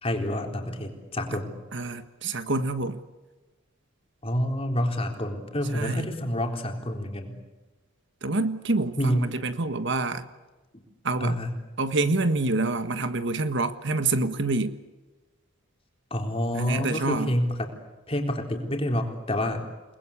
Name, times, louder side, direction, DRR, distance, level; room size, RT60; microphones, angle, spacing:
voice 1, 0.0-1.6 4.2-7.4 9.0-9.3 10.7-10.8 11.2-11.5 16.1-17.7 18.1-19.7, equal, 25° left, 3 dB, 3.8 m, -28 dB
voice 2, 1.7-3.0 5.7-6.1 8.2-10.2 11.0-11.4 11.8-14.8 16.5-17.3, right 2 dB, 55° right, 10 dB, 1.5 m, -27 dB
29.5 x 20.5 x 8.5 m, 1.2 s
head